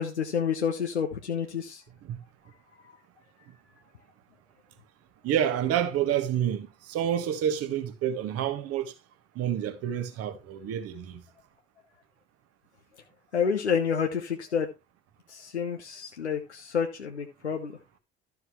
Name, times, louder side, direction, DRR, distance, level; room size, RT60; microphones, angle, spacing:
voice 1, 0.0-1.8 13.3-14.7 15.3-17.8, left 7 dB, 85° left, 1.0 m, -29 dB
voice 2, 5.2-8.9 9.3-11.2, right 10 dB, 45° right, 1.5 m, -28 dB
12.0 x 6.9 x 3.1 m
figure-of-eight pair, 65°, 33 cm